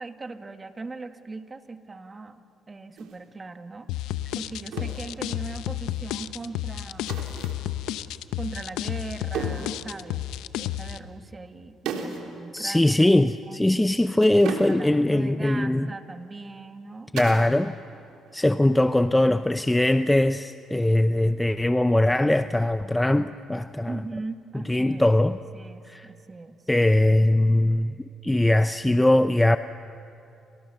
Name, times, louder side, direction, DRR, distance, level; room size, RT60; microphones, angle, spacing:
voice 1, 0.0-3.9 4.3-7.2 8.4-10.3 10.6-13.6 14.7-17.1 23.9-26.6, right 3 dB, 30° right, 1.9 m, -39 dB
sound 1, 3.0-3.2 4.7-5.1 7.1-7.7 9.3-9.8 11.9-12.3 12.6-12.7 14.2-15.0 17.2-17.6 17.9-18.4 20.7-21.2, right 6 dB, 80° right, 3.5 m, -35 dB
sound 2, 3.9-11.0, left 13 dB, 85° left, 0.8 m, -31 dB
voice 2, 12.5-15.9 17.1-17.7 18.3-24.0 24.7-25.4 25.9-26.1 26.7-27.9 28.2-29.6, left 1 dB, 10° left, 0.7 m, -21 dB
30.0 x 27.5 x 6.9 m
supercardioid pair, 75°, 0 cm